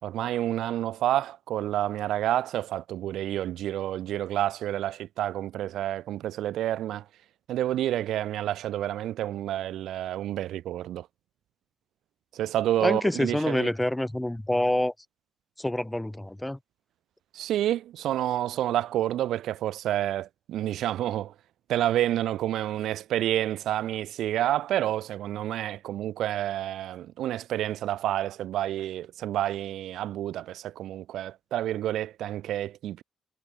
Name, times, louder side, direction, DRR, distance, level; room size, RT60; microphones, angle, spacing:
voice 1, 0.0-7.0 7.5-11.1 12.3-13.7 17.3-21.3 21.7-33.0, right 12 dB, 80° right, 7.1 m, -29 dB
voice 2, 12.8-14.9 15.6-16.6, left 1 dB, 5° left, 4.3 m, -27 dB
cardioid pair, 130°, 0 cm